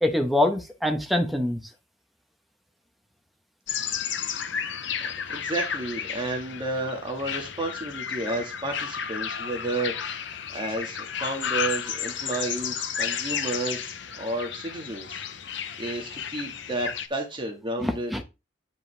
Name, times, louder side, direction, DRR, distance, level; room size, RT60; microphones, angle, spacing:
voice 1, 0.0-1.6 17.8-18.2, left 1 dB, ahead, 4 dB, 1.1 m, -24 dB
sound 1, 3.7-17.1, left 8 dB, 65° left, 0.8 m, -32 dB
voice 2, 5.0-10.0 10.3-15.2 15.8-18.2, right 2 dB, 25° right, 2 dB, 1.6 m, -32 dB
9.4 x 5.3 x 3.3 m, 0.27 s
head